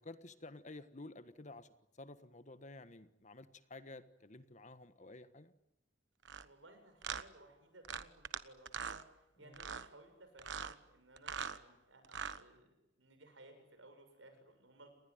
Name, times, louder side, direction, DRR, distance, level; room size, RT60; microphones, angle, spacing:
voice 1, 0.0-1.7 1.9-5.5 9.4-9.6, left 2 dB, 40° left, 12 dB, 1.5 m, -52 dB
sound 1, 6.2-6.4 7.0-7.2 7.8-8.4 8.7-9.0 9.5-9.9 10.4-10.7 11.2-11.6 12.0-12.4, right 6 dB, 65° right, 1.2 m, -42 dB
voice 2, 6.4-9.0 9.4-12.7 13.0-14.9, right 2 dB, 85° right, 7 dB, 7.4 m, -60 dB
30.0 x 20.5 x 9.5 m, 0.88 s
head